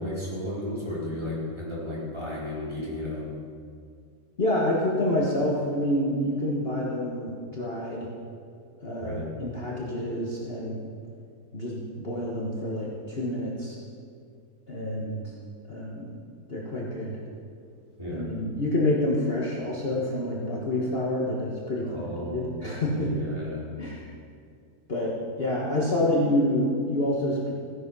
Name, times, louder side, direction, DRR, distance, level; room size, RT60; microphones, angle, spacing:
voice 1, 0.0-3.3 9.0-9.3 18.0-18.3 21.8-22.5 22.8-23.6, left 1 dB, 15° right, -8 dB, 4.3 m, -34 dB
voice 2, 4.4-8.1 8.8-10.9 11.5-13.8 14.7-15.3 15.7-16.1 16.5-17.2 18.1-23.1 23.8-24.1 24.9-27.5, left 1 dB, 40° left, -4 dB, 1.7 m, -28 dB
16.0 x 9.9 x 5.6 m, 2.3 s
omnidirectional pair, 1.6 m